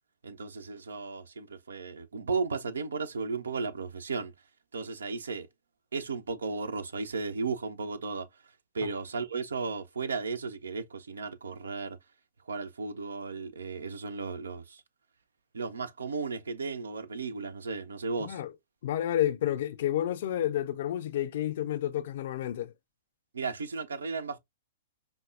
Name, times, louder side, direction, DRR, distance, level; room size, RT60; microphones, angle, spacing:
voice 1, 0.2-4.3 4.7-5.5 5.9-8.3 8.7-12.0 12.5-14.8 15.5-18.4 23.3-24.4, right 4 dB, 75° right, 0.4 m, -35 dB
voice 2, 18.2-18.5 18.8-22.7, left 12 dB, 55° left, 0.4 m, -30 dB
5.2 x 2.2 x 2.4 m
figure-of-eight pair, 110°, 0 cm